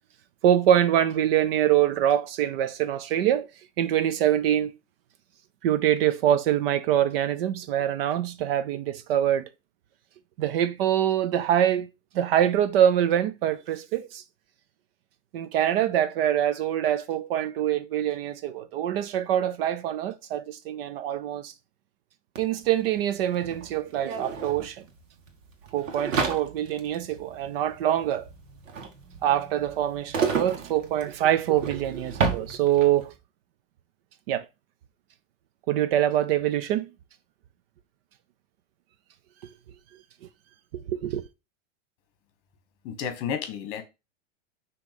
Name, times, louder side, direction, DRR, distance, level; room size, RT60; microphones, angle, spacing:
voice 1, 0.4-3.5 3.8-4.7 5.6-9.5 10.4-11.9 12.1-14.2 15.3-21.5 22.4-24.8 25.7-28.3 29.2-33.1 34.3-34.5 35.7-36.9 40.7-41.2, right 11 dB, 50° right, 0.7 m, -24 dB
sound 1, 22.4-22.5 22.6-33.1, right 5 dB, 90° right, 1.6 m, -32 dB
voice 2, 42.8-43.8, left 7 dB, 35° left, 1.4 m, -31 dB
6.1 x 3.2 x 5.1 m
supercardioid pair, 145°, 37 cm